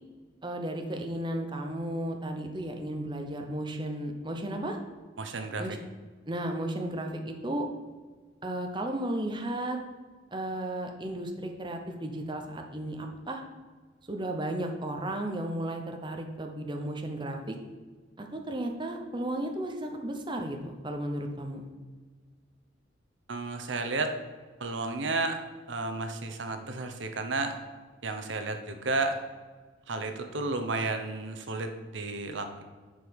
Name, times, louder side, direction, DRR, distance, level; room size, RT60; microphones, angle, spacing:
voice 1, 0.4-4.8 5.6-5.8 6.3-7.7 8.4-9.8 10.3-13.4 14.1-17.6 18.2-21.7, right 1 dB, 25° right, 3 dB, 0.8 m, -34 dB
voice 2, 5.2-5.8 23.3-24.2 24.6-25.4 25.7-27.6 28.0-29.2 29.9-32.6, right 3 dB, 70° right, 6 dB, 0.9 m, -32 dB
10.0 x 4.8 x 5.3 m, 1.4 s
head